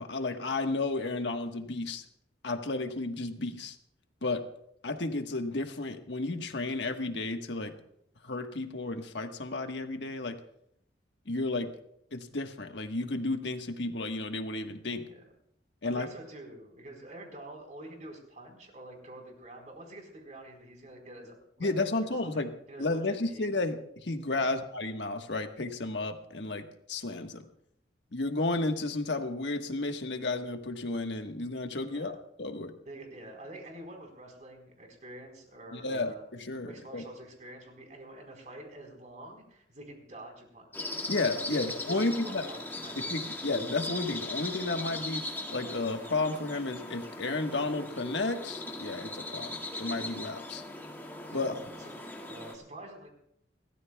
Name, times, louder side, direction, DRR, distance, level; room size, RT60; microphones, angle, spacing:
voice 1, 0.0-2.0 2.4-3.8 4.2-4.4 4.8-7.7 8.2-10.4 11.3-11.7 12.1-15.0 15.8-16.1 21.6-22.5 22.8-27.4 28.1-32.7 35.7-37.0 41.1-42.4 43.0-50.6 51.3-51.5, left 2 dB, 75° left, 5 dB, 1.4 m, -32 dB
voice 2, 15.8-23.4 24.4-24.6 31.9-32.2 32.8-36.2 36.5-40.9 41.5-43.2 51.3-51.9 52.3-53.1, right 1 dB, 45° right, 2 dB, 4.3 m, -47 dB
sound 1, 40.7-52.5, left 2 dB, 10° left, 2.0 m, -39 dB
29.5 x 14.0 x 2.3 m, 0.72 s
head